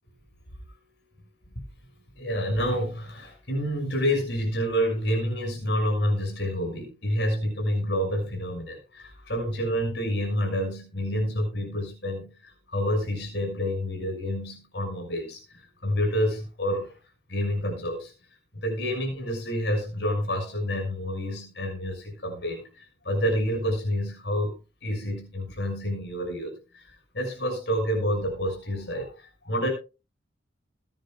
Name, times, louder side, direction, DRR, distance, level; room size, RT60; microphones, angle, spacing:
voice 1, 2.2-16.9 17.3-18.1 18.5-29.7, equal, 65° left, 3 dB, 6.3 m, -28 dB
21.0 x 10.5 x 2.3 m, 0.31 s
head